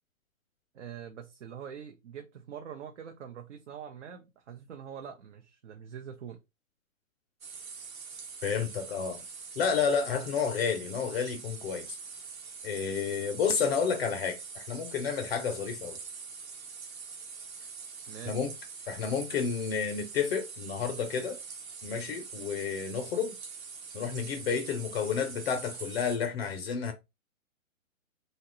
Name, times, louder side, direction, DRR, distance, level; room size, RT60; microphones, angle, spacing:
voice 1, 0.7-6.4 18.1-18.4, right 8 dB, 60° right, 0.6 m, -44 dB
sound 1, 7.4-26.2, right 5 dB, 80° right, 1.0 m, -44 dB
voice 2, 8.4-9.2 9.6-12.0 12.6-16.0 18.3-18.5 18.9-21.4 21.8-23.3 23.9-26.9, left 6 dB, 50° left, 0.5 m, -30 dB
2.8 x 2.2 x 3.5 m
hypercardioid pair, 140°, 41 cm